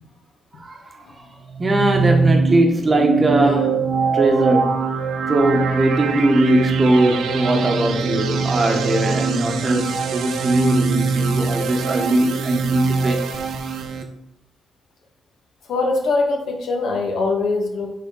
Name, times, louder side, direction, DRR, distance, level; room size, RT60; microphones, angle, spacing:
voice 1, 1.0-1.3 15.7-17.9, left 3 dB, 70° left, 1 dB, 1.4 m, -22 dB
sound 1, 1.5-14.0, right 5 dB, 70° right, 0.7 m, -22 dB
voice 2, 1.6-3.8 4.1-4.8 5.3-13.2, right 1 dB, 25° right, 3 dB, 1.1 m, -20 dB
9.2 x 3.7 x 3.7 m, 0.80 s
wide cardioid pair, 160°, 0 cm